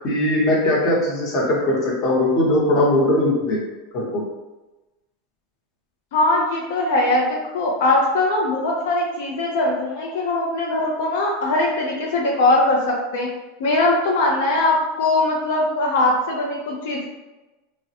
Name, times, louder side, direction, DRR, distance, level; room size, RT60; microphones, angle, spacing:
voice 1, 0.0-3.6 3.9-4.2, left 1 dB, 35° left, -4 dB, 0.9 m, -20 dB
voice 2, 6.1-13.3 13.6-17.0, left 2 dB, 75° left, -2 dB, 0.5 m, -21 dB
3.4 x 2.1 x 2.8 m, 1.1 s
supercardioid pair, 150°, 0 cm